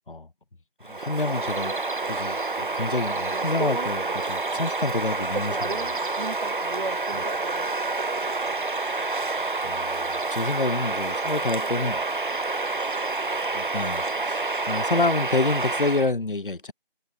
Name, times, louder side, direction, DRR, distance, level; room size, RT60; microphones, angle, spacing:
Bird vocalization bird call bird song, 0.8-16.1, right 3 dB, 60° right, 0.5 m, -28 dB
voice 1, 0.9-1.7 2.1-6.0 7.1-7.2 9.6-12.0 13.5-16.7, left 3 dB, 60° left, 0.8 m, -28 dB
sound 1, 1.0-12.6, right 1 dB, 75° right, 3.9 m, -51 dB
voice 2, 6.8-8.8, right 1 dB, 35° right, 5.2 m, -47 dB
figure-of-eight pair, 180°, 29 cm